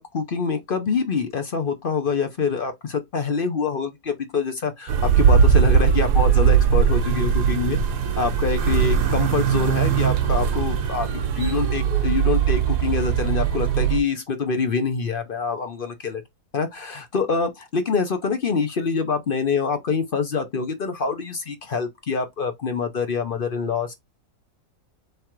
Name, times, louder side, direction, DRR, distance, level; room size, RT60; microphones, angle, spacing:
voice 1, 0.0-7.8 8.2-16.2 16.5-23.9, left 5 dB, 50° left, 0.7 m, -25 dB
sound 1, 4.9-14.0, right 7 dB, 85° right, 1.4 m, -20 dB
3.7 x 3.2 x 4.4 m
omnidirectional pair, 1.7 m